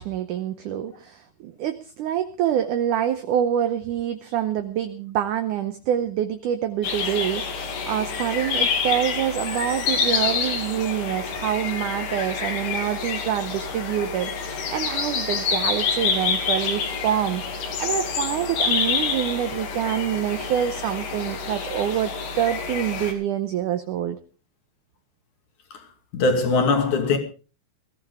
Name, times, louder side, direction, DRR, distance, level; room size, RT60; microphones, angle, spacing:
voice 1, 0.0-24.2, right 10 dB, 75° right, 1.8 m, -26 dB
sound 1, 6.8-23.1, left 5 dB, 75° left, 4.4 m, -27 dB
voice 2, 26.1-27.2, left 3 dB, 50° left, 3.6 m, -21 dB
20.5 x 14.5 x 3.6 m
omnidirectional pair, 4.7 m